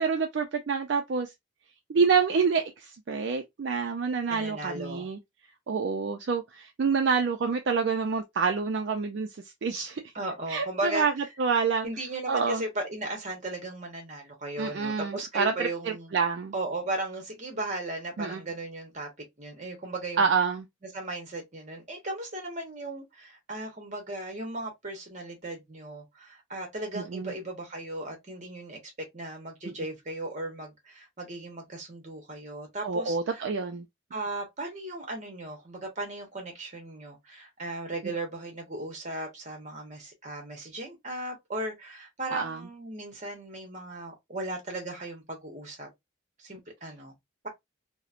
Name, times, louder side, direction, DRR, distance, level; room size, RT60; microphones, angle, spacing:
voice 1, 0.0-1.3 1.9-5.2 5.7-9.3 9.6-10.0 10.5-11.1 11.4-11.9 12.3-12.6 14.6-16.5 18.2-18.4 20.2-20.6 26.9-27.3 32.8-33.9 42.3-42.6, right 5 dB, 55° right, 0.3 m, -27 dB
voice 2, 4.3-5.1 10.1-11.1 11.8-16.2 16.5-20.3 20.9-33.5 34.1-45.9 46.4-47.1, right 2 dB, 35° right, 0.9 m, -36 dB
2.9 x 2.0 x 2.4 m
head